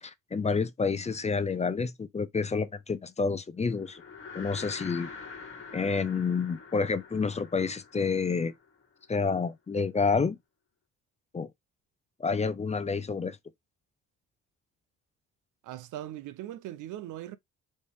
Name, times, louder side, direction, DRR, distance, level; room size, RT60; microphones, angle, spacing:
voice 1, 0.0-4.0 4.3-5.1 5.7-8.5 9.1-10.4 11.3-11.5 12.2-13.4, left 5 dB, 20° left, 0.5 m, -29 dB
sound 1, 3.7-9.2, left 5 dB, 45° left, 1.6 m, -45 dB
voice 2, 15.6-17.4, right 13 dB, 80° right, 0.6 m, -40 dB
4.2 x 3.0 x 3.5 m
cardioid pair, 90°, 30 cm